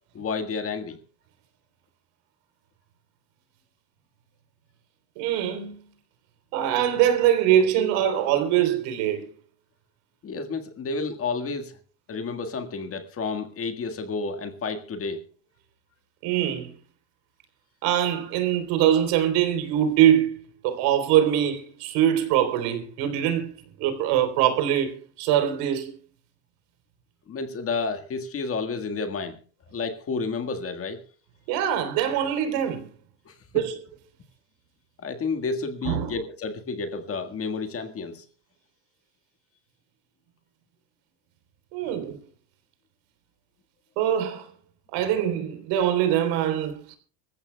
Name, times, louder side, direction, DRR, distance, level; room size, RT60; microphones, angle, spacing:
voice 1, 0.1-1.0 10.2-11.8 12.1-15.2 27.3-29.4 29.7-31.0 33.2-33.3 35.0-38.2, left 4 dB, 30° left, 1.6 m, -31 dB
voice 2, 5.2-5.8 6.5-9.3 16.2-16.7 17.8-25.9 31.5-32.8 33.5-33.8 35.8-36.1 41.7-42.2 44.0-44.5 44.9-47.0, right 10 dB, 60° right, 3.7 m, -23 dB
25.5 x 15.0 x 2.2 m
cardioid pair, 150°, 48 cm